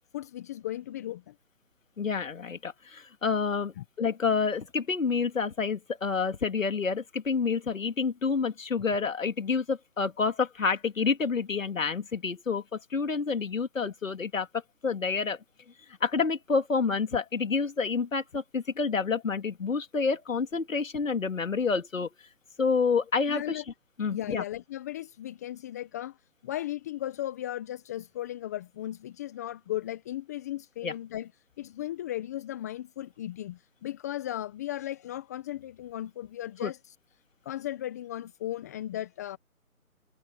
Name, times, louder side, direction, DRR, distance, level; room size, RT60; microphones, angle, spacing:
voice 1, 0.1-1.3 3.8-3.9 23.3-23.6 24.1-26.2 26.4-31.3 31.6-36.9 37.4-39.4, left 13 dB, 10° left, 1.0 m, -36 dB
voice 2, 2.0-14.5 14.8-15.4 16.0-22.1 22.6-23.6 24.0-24.4 30.8-30.9 36.6-36.7, left 5 dB, 65° left, 2.7 m, -28 dB
figure-of-eight pair, 155°, 43 cm